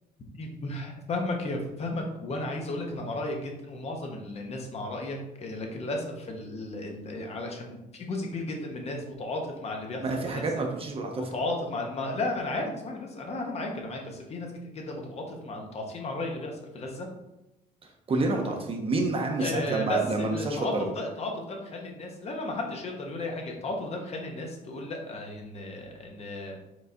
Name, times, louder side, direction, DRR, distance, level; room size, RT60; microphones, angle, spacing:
voice 1, 0.4-10.0 10.3-10.4 11.2-17.1 19.4-26.6, left 2 dB, 40° left, 1 dB, 0.9 m, -34 dB
voice 2, 10.0-11.3 18.1-20.9, right 3 dB, 35° right, 2 dB, 0.7 m, -28 dB
4.6 x 3.8 x 2.7 m, 0.92 s
cardioid pair, 110°, 17 cm